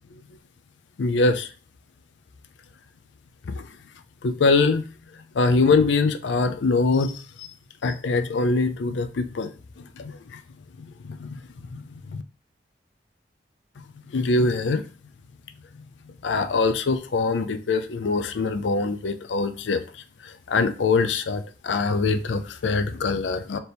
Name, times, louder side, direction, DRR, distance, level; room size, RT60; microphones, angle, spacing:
voice 1, 1.0-1.5 3.5-3.6 4.2-4.8 5.3-7.5 7.8-9.5 10.0-10.4 11.0-11.4 11.7-12.2 14.1-14.8 16.2-19.8 20.2-23.6, left 3 dB, 85° left, 0.5 m, -23 dB
4.3 x 2.9 x 3.4 m
head